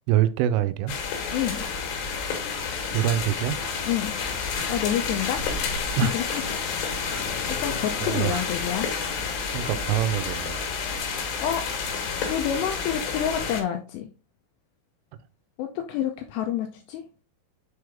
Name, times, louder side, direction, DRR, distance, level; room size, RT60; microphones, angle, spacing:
voice 1, 0.1-1.0 2.9-3.6 6.0-6.1 6.5-6.6 7.0-7.4 8.0-8.5 9.5-10.6, right 11 dB, 85° right, 3.1 m, -25 dB
sound 1, 0.9-13.6, left 5 dB, 65° left, 3.2 m, -30 dB
voice 2, 1.3-1.7 3.9-4.2 4.7-5.8 6.1-6.4 6.7-7.1 7.5-8.9 11.4-11.6 12.3-14.1 15.6-17.0, left 10 dB, 85° left, 2.4 m, -29 dB
6.9 x 4.7 x 3.4 m
omnidirectional pair, 5.6 m